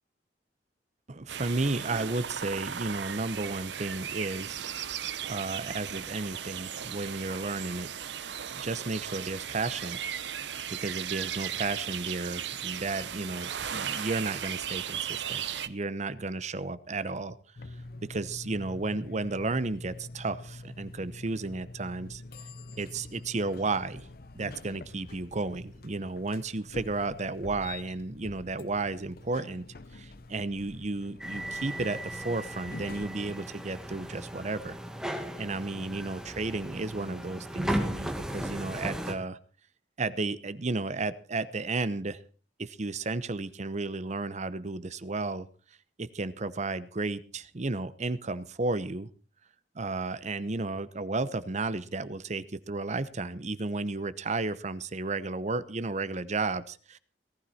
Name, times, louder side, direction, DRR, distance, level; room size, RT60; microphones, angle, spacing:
voice 1, 1.1-4.7 5.3-7.9 8.5-10.0 10.8-17.4 18.1-22.2 22.8-24.1 24.3-29.6 29.9-34.8 35.4-39.4 40.0-42.2 42.6-45.5 46.0-49.1 49.7-57.0, right 3 dB, 40° right, 15 dB, 0.8 m, -33 dB
sound 1, 1.3-15.7, right 9 dB, 80° right, 0.8 m, -36 dB
sound 2, 17.6-33.1, left 2 dB, 60° left, 0.8 m, -46 dB
sound 3, 31.2-39.1, right 1 dB, 5° right, 2.0 m, -36 dB
18.0 x 12.5 x 4.2 m, 0.39 s
head